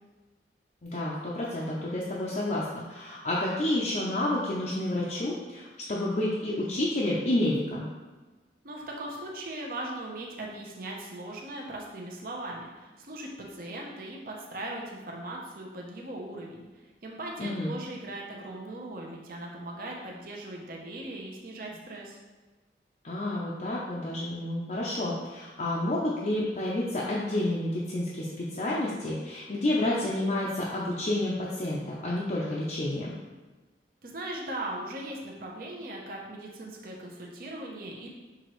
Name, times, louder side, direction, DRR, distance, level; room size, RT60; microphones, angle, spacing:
voice 1, 0.8-5.6 5.9-7.9 17.4-17.7 23.0-33.1, left 1 dB, 40° left, -6 dB, 0.5 m, -30 dB
voice 2, 8.6-16.7 17.0-22.2 34.0-38.1, right 1 dB, 50° right, -1 dB, 0.7 m, -39 dB
6.0 x 2.9 x 3.0 m, 1.3 s
head